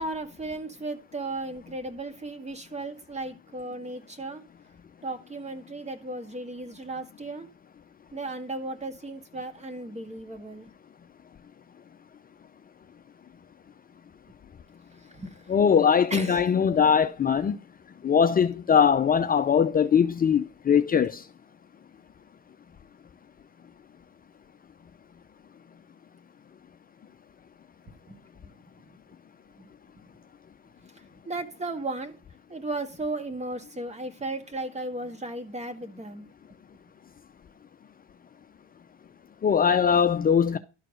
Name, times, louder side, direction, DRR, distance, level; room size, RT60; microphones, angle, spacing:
voice 1, 0.0-4.4 5.0-7.5 8.1-10.7 14.9-15.6 16.1-16.4 27.9-28.6 29.6-29.7 31.0-32.2 32.5-36.3, right 2 dB, 20° right, 1.8 m, -35 dB
voice 2, 15.5-17.6 18.0-21.2 39.4-40.6, left 7 dB, 30° left, 0.6 m, -21 dB
12.0 x 4.6 x 5.1 m
supercardioid pair, 80°, 31 cm